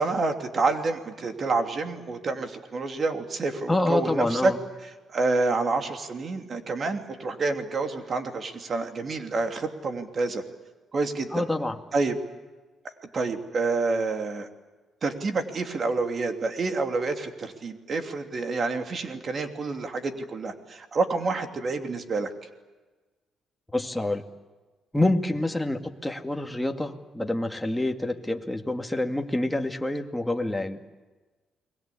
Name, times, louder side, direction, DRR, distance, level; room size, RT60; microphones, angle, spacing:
voice 1, 0.0-4.5 5.1-10.4 10.9-11.4 11.9-12.2 13.1-14.5 15.0-22.3, right 3 dB, 45° right, 6 dB, 2.9 m, -28 dB
voice 2, 3.7-4.6 11.3-11.8 23.7-24.2 24.9-30.8, left 1 dB, 5° left, 4 dB, 2.2 m, -27 dB
30.0 x 21.5 x 8.6 m, 1.3 s
cardioid pair, 90°, 0 cm